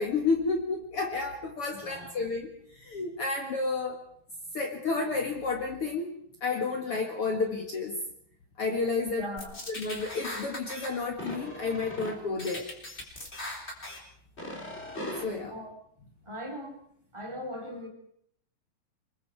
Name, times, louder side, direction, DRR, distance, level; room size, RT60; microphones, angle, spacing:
voice 1, 0.0-2.5 2.8-4.0 4.5-6.1 6.4-8.0 8.6-9.3 9.7-12.7 15.2-15.5, left 4 dB, 45° left, 3 dB, 2.4 m, -31 dB
voice 2, 1.7-2.3 9.0-9.6 15.5-15.7 16.2-16.8 17.1-17.9, equal, 10° right, 2 dB, 2.9 m, -39 dB
sound 1, 9.4-10.9 11.2-12.1 12.4-14.0 14.4-15.2, left 1 dB, 20° left, 3.9 m, -38 dB
26.0 x 22.0 x 4.7 m, 0.66 s
omnidirectional pair, 4.0 m